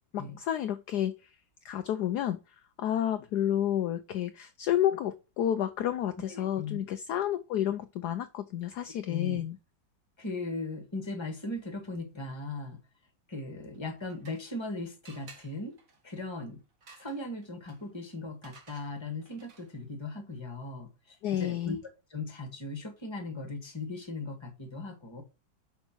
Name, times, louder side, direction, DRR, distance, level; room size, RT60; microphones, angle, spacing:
voice 1, 0.1-1.1 1.6-2.4 2.8-9.6 21.2-21.8, left 11 dB, 70° left, 1.0 m, -30 dB
voice 2, 6.2-6.8 9.0-9.4 10.2-12.8 13.3-15.8 16.0-16.6 17.0-21.8 22.1-25.2, left 3 dB, 15° left, 1.6 m, -38 dB
sound 1, 13.7-14.7 15.0-19.9, right 4 dB, 45° right, 1.8 m, -57 dB
5.8 x 5.0 x 6.0 m
omnidirectional pair, 2.0 m